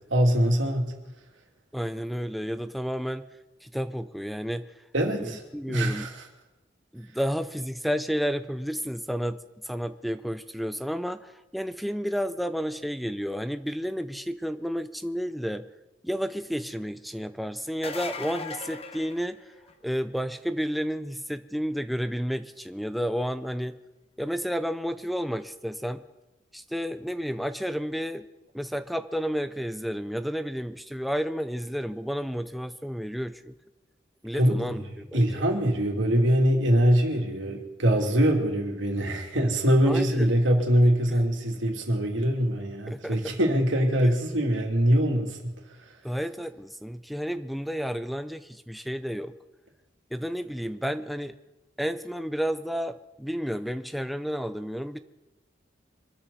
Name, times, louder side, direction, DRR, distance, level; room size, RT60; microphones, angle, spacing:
voice 1, 0.1-0.9 4.9-5.4 5.7-6.2 34.3-34.8 35.1-45.5 45.8-45.9, equal, 85° right, 1 dB, 2.9 m, -23 dB
voice 2, 1.7-3.3 3.6-4.7 5.2-6.1 6.9-9.4 9.6-15.7 16.0-19.5 19.8-23.8 24.2-26.0 26.5-28.2 28.5-33.5 34.2-35.4 39.9-40.3 41.1-41.2 42.9-43.2 46.0-49.3 50.1-51.4 51.8-55.0, equal, ahead, 10 dB, 0.5 m, -31 dB
sound 1, 17.7-19.9 25.4-25.5 27.3-27.4, left 4 dB, 35° left, 1.1 m, -38 dB
25.0 x 13.5 x 4.2 m, 1.0 s
head